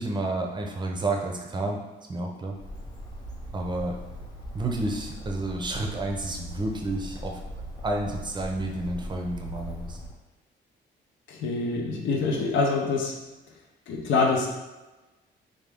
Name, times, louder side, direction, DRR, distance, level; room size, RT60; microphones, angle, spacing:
voice 1, 0.0-1.8 2.1-2.6 3.5-4.0 4.5-7.4 7.8-10.0, right 2 dB, 20° right, 1 dB, 0.6 m, -30 dB
Bird, 2.5-10.1, equal, 20° left, 0.7 m, -40 dB
voice 2, 11.3-13.2 13.9-14.5, left 3 dB, 75° left, 1 dB, 0.7 m, -25 dB
3.6 x 2.3 x 3.5 m, 1.1 s
cardioid pair, 90°, 20 cm